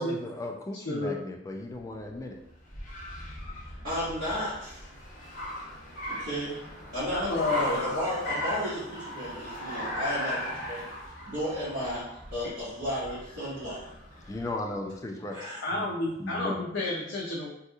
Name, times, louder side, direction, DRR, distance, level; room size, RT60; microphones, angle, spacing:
voice 1, 0.0-2.4 14.3-15.5 15.8-15.9 16.2-16.6, left 2 dB, 15° left, 3 dB, 0.3 m, -36 dB
Car, 1.7-14.6, left 1 dB, 45° left, 0.9 m, -37 dB
voice 2, 3.8-4.8 6.1-6.6 6.9-10.9 11.3-12.0 12.3-13.9 15.3-15.6, equal, 50° right, -14 dB, 1.4 m, -33 dB
voice 3, 7.1-7.9 12.4-12.5 15.6-17.5, left 2 dB, 75° left, -4 dB, 0.5 m, -31 dB
3.6 x 2.8 x 2.3 m, 0.79 s
head